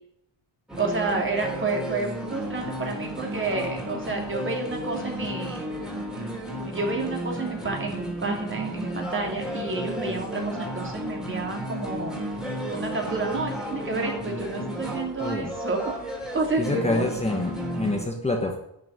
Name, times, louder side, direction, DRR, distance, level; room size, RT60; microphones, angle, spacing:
sound 1, 0.7-18.0, equal, ahead, 3.4 m, -33 dB
voice 1, 0.8-5.6 6.7-12.1 12.7-15.9 16.3-17.0, right 3 dB, 25° right, 1 dB, 3.1 m, -30 dB
voice 2, 15.2-15.5 16.6-18.6, left 2 dB, 15° left, 2 dB, 1.2 m, -27 dB
11.0 x 6.7 x 9.1 m, 0.78 s
wide cardioid pair, 150°, 44 cm